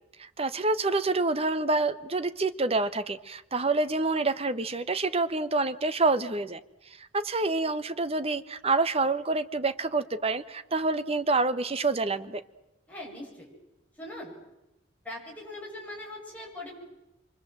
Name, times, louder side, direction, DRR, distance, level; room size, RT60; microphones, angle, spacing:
voice 1, 0.2-6.6 7.0-12.4, right 3 dB, 35° right, 12 dB, 1.0 m, -27 dB
voice 2, 12.9-13.5 14.0-14.3 15.0-16.7, left 1 dB, 10° left, -3 dB, 7.2 m, -41 dB
26.0 x 24.0 x 7.7 m, 0.92 s
head